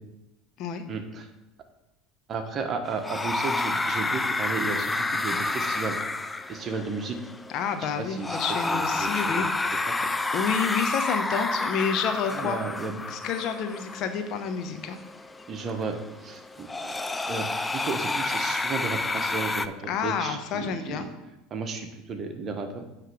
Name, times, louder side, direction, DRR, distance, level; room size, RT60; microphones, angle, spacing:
voice 1, 0.9-1.3 2.3-6.0 6.5-7.2 8.0-9.5 9.9-10.0 12.3-13.0 15.5-17.0 17.3-21.1 21.5-22.9, right 4 dB, 40° right, 5 dB, 1.2 m, -34 dB
sound 1, 2.9-19.7, left 2 dB, 15° left, 0.4 m, -30 dB
voice 2, 7.5-9.5 10.3-12.6 13.1-15.0 19.9-21.1, left 7 dB, 55° left, 7 dB, 0.9 m, -29 dB
9.3 x 3.3 x 6.2 m, 0.94 s
hypercardioid pair, 75°, 0 cm